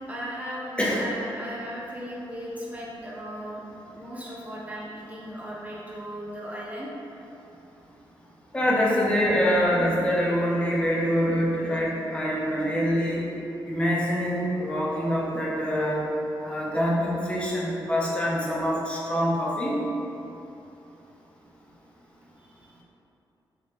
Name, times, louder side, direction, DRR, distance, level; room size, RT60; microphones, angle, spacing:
voice 1, 0.0-0.7 1.0-6.9 22.4-22.5, equal, 15° right, -6 dB, 0.9 m, -37 dB
voice 2, 8.5-13.2 13.7-16.0 16.4-19.8, equal, 10° left, -5 dB, 0.8 m, -25 dB
3.2 x 3.2 x 2.9 m, 2.9 s
cardioid pair, 65°, 9 cm